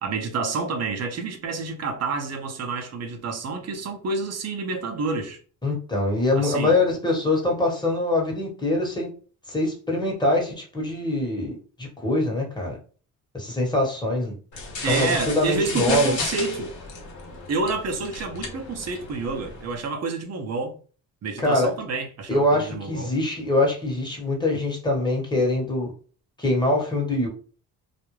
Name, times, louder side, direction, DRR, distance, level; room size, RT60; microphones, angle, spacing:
voice 1, 0.0-5.4 6.4-6.8 14.8-16.7 17.5-20.8 21.2-23.1, right 4 dB, 45° right, 0.7 m, -28 dB
voice 2, 5.6-9.1 9.5-12.8 13.3-14.3 14.8-16.1 21.4-21.7 22.3-25.9 26.4-27.3, left 2 dB, 10° left, 1.1 m, -24 dB
sound 1, 14.5-19.8, left 4 dB, 55° left, 0.9 m, -34 dB
2.4 x 2.1 x 3.1 m
cardioid pair, 85°, 35 cm